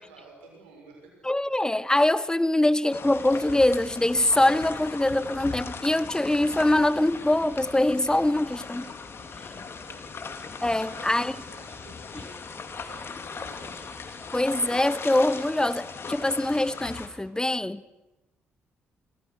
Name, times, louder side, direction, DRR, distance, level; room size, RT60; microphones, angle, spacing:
voice 1, 0.0-1.3 2.5-2.6 9.1-10.3 10.8-13.8, right 3 dB, 90° right, 6.8 m, -52 dB
voice 2, 1.2-8.9 10.6-11.3 14.3-17.8, left 1 dB, 15° left, 1.1 m, -23 dB
sound 1, 2.9-17.1, left 5 dB, 45° left, 3.3 m, -39 dB
29.5 x 25.5 x 6.5 m
hypercardioid pair, 45°, 5 cm